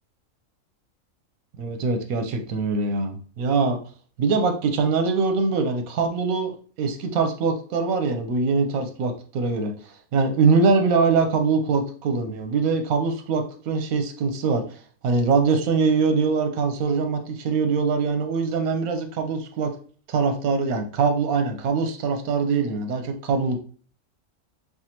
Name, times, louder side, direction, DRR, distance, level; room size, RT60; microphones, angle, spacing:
voice 1, 1.6-3.8 4.2-9.7 10.1-14.6 15.0-19.7 20.1-23.6, right 4 dB, 90° right, 6 dB, 1.1 m, -23 dB
4.9 x 2.2 x 2.9 m, 0.42 s
omnidirectional pair, 1.4 m